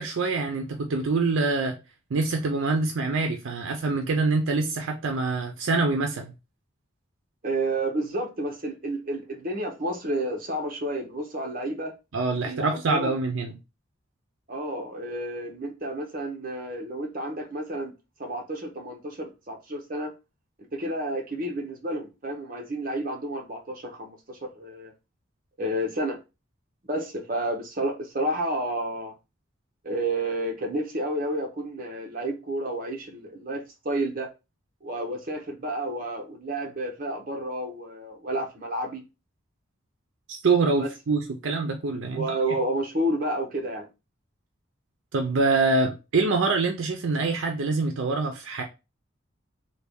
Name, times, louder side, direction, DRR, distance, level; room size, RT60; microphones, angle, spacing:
voice 1, 0.0-1.8 2.1-6.3 12.1-13.6 40.3-42.4 45.1-48.6, right 3 dB, 85° right, 0.5 m, -25 dB
voice 2, 7.4-11.9 12.4-13.2 14.5-17.9 18.2-20.1 20.7-24.9 25.6-26.2 26.9-29.1 29.8-34.3 34.8-39.0 40.8-40.9 42.1-43.9, right 1 dB, 45° right, 0.8 m, -30 dB
3.3 x 2.3 x 3.5 m
head